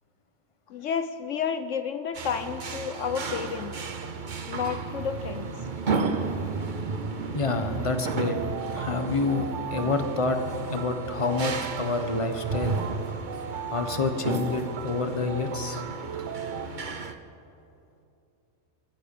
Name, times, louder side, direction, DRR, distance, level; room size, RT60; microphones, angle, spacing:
voice 1, 0.7-3.7 4.5-5.5, left 7 dB, 70° left, 10 dB, 1.1 m, -31 dB
sound 1, 2.1-17.1, right 4 dB, 40° right, 1.0 m, -33 dB
voice 2, 7.3-8.4 8.7-10.4 10.7-12.8 13.7-15.8, left 3 dB, 25° left, 7 dB, 1.3 m, -28 dB
sound 2, 8.0-16.7, right 9 dB, 70° right, 1.1 m, -38 dB
26.0 x 15.0 x 6.8 m, 2.7 s
omnidirectional pair, 1.4 m